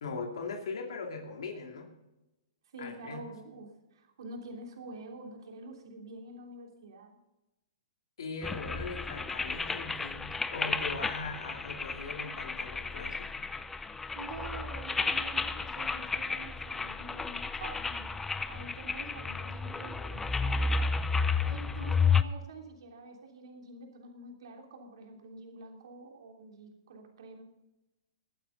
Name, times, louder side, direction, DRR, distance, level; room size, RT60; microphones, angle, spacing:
voice 1, 0.0-1.9 2.8-3.2 8.2-13.4, left 4 dB, 80° left, 1 dB, 2.6 m, -40 dB
voice 2, 2.7-7.2 14.1-18.1 18.4-20.9 21.4-27.4, right 2 dB, 70° right, 2 dB, 3.2 m, -47 dB
sound 1, 8.4-22.2, left 4 dB, 10° left, 0.4 m, -32 dB
21.5 x 9.2 x 3.9 m, 0.96 s
hypercardioid pair, 145°, 3 cm